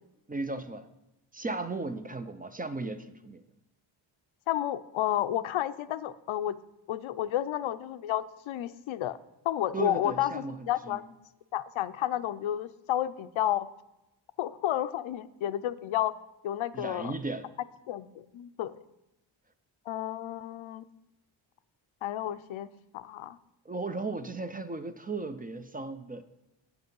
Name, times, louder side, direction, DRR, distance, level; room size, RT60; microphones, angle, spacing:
voice 1, 0.3-0.9 1.3-3.4 9.7-11.0 16.7-17.5 23.7-26.2, right 3 dB, 20° right, 10 dB, 0.4 m, -36 dB
voice 2, 4.5-6.6 6.9-9.2 9.4-11.0 11.5-13.7 14.4-16.1 16.4-17.1 17.9-18.8 19.9-20.8 22.0-22.7 22.9-23.4, left 12 dB, 70° left, 14 dB, 0.6 m, -31 dB
8.2 x 7.9 x 5.3 m, 0.92 s
cardioid pair, 95°, 50 cm